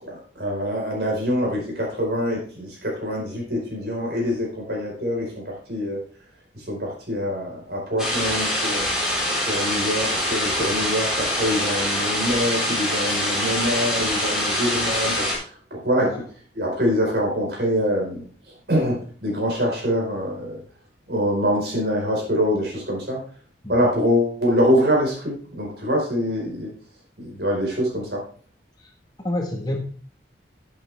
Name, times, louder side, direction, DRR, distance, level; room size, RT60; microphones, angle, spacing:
voice 1, 0.0-6.0 6.5-8.9 9.3-16.2 16.5-20.6 21.1-23.2 23.7-26.7 27.2-28.2, equal, 60° right, -1 dB, 4.8 m, -25 dB
sound 1, 8.0-15.3, left 1 dB, 5° right, 3.8 m, -24 dB
voice 2, 29.2-29.8, left 1 dB, 20° left, 1 dB, 1.6 m, -29 dB
11.0 x 8.6 x 3.5 m, 0.42 s
head